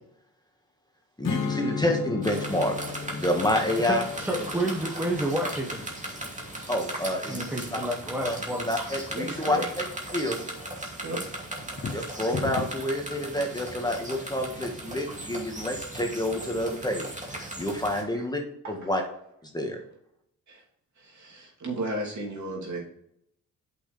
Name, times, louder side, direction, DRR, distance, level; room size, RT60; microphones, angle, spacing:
Strum, 1.2-6.6, left 6 dB, 65° left, 1.1 m, -36 dB
voice 1, 1.2-2.8 3.0-4.0 4.4-4.5 6.7-7.5 8.2-8.4 8.6-9.8 10.1-10.4 11.9-18.4 18.7-19.0 19.4-19.8, left 1 dB, 10° left, 3 dB, 1.6 m, -28 dB
sound 1, 2.2-18.0, right 1 dB, 20° right, 2.5 m, -37 dB
voice 2, 3.8-5.9 7.3-8.7, right 1 dB, 5° right, 1 dB, 1.3 m, -30 dB
voice 3, 9.2-9.7 11.0-11.4 18.1-18.2 18.6-18.9 20.5-20.6 21.0-22.8, right 1 dB, 55° right, -2 dB, 3.0 m, -34 dB
sound 2, 11.6-13.0, left 4 dB, 35° left, 1.0 m, -33 dB
8.3 x 5.9 x 3.3 m, 0.73 s
cardioid pair, 65°, 34 cm